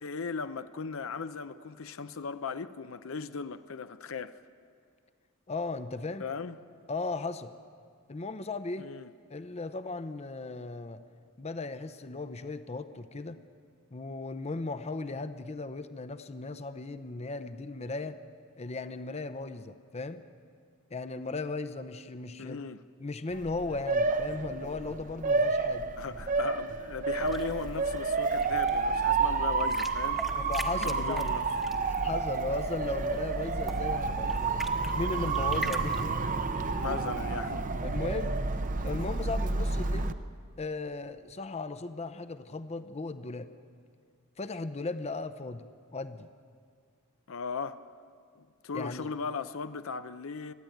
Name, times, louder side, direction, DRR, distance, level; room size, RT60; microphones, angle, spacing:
voice 1, 0.0-4.4 6.2-6.6 8.8-9.1 22.4-22.8 26.0-30.2 30.7-31.5 35.5-35.8 36.8-37.7 47.3-47.8 48.4-50.5, left 5 dB, 65° left, 0.6 m, -37 dB
voice 2, 5.5-6.3 6.9-7.5 8.1-8.9 9.3-11.0 11.4-13.4 13.9-18.2 18.6-20.2 20.9-22.6 23.0-25.9 30.3-31.4 31.8-34.6 34.9-36.2 36.6-36.7 37.8-38.3 38.8-40.1 40.6-43.5 44.4-46.3 48.7-49.1, left 3 dB, 30° left, 0.7 m, -36 dB
Motor vehicle (road) / Siren, 23.3-40.1, right 4 dB, 40° right, 0.7 m, -30 dB
sound 1, 27.2-36.1, equal, ahead, 1.1 m, -43 dB
28.5 x 10.5 x 9.2 m
head